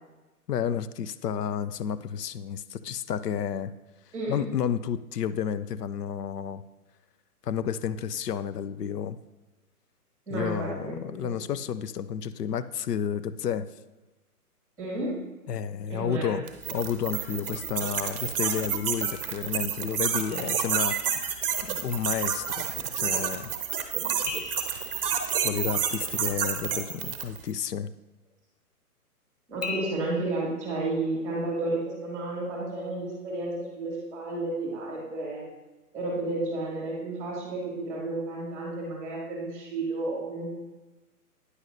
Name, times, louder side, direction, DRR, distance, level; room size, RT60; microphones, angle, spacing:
voice 1, 0.5-3.7 4.3-6.6 7.4-9.2 10.3-13.7 15.5-16.4 16.7-21.0 21.6-22.7 23.0-23.5 25.4-27.9, left 8 dB, 90° left, 14 dB, 0.5 m, -31 dB
voice 2, 10.3-11.4 14.8-15.2 15.9-16.3 23.9-24.2 29.5-35.4 35.9-40.5, right 2 dB, 5° right, -4 dB, 1.9 m, -32 dB
sound 1, 16.5-27.4, right 8 dB, 35° right, 0.8 m, -29 dB
sound 2, 20.3-21.6 24.3-26.3 29.6-29.9, left 5 dB, 25° left, 0.6 m, -40 dB
9.6 x 8.0 x 2.6 m, 1.1 s
hypercardioid pair, 145°, 46 cm